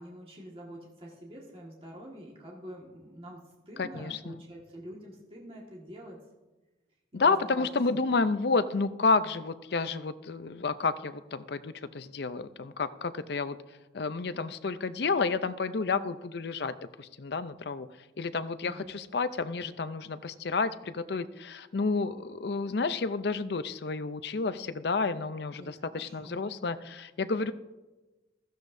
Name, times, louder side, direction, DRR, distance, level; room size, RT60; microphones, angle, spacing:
voice 1, 0.0-6.2 7.1-8.2 18.6-19.0 25.6-26.4, equal, 30° right, -3 dB, 1.7 m, -46 dB
voice 2, 3.8-4.4 7.1-13.6 13.9-17.9 18.2-27.5, left 4 dB, 60° left, 12 dB, 0.5 m, -30 dB
15.5 x 13.5 x 2.7 m, 1.1 s
head